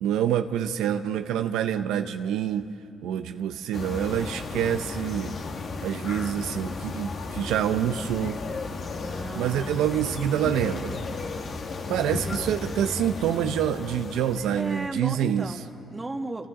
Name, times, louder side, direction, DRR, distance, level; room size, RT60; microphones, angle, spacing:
voice 1, 0.0-2.7 3.0-5.3 5.8-8.4 9.3-11.0 11.9-15.5, right 10 dB, 90° right, 8 dB, 0.6 m, -26 dB
sound 1, 3.7-14.9, left 3 dB, 55° left, 1.7 m, -34 dB
voice 2, 9.0-10.3 12.1-12.7 14.5-16.5, right 2 dB, 20° right, 4 dB, 1.7 m, -36 dB
29.0 x 27.5 x 3.8 m, 2.5 s
cardioid pair, 90°, 0 cm